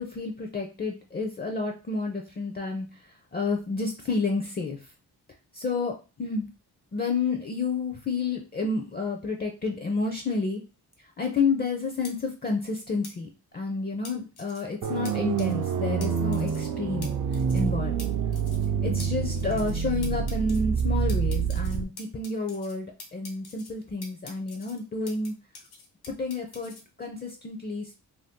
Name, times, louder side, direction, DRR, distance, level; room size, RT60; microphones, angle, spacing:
voice 1, 0.0-2.9 3.3-4.8 5.5-5.9 6.2-6.5 6.9-10.6 11.2-17.2 17.5-18.0 18.8-25.3 26.1-27.9, left 4 dB, 25° left, 3 dB, 0.4 m, -30 dB
sound 1, 12.0-12.1 13.0-13.1 14.0-14.6 15.0-15.1 15.4-15.7 16.0-16.1 16.3-16.7 17.0-17.1 17.3-17.7 18.0-18.1 18.3-18.7 19.0-19.1 19.4-19.8 20.0-20.6 21.1-22.7 23.0-23.7 24.0-25.3 25.5-26.8, left 4 dB, 85° left, 0.9 m, -45 dB
sound 2, 14.8-21.8, right 7 dB, 55° right, 0.5 m, -27 dB
2.7 x 2.2 x 3.5 m, 0.31 s
cardioid pair, 115°, 38 cm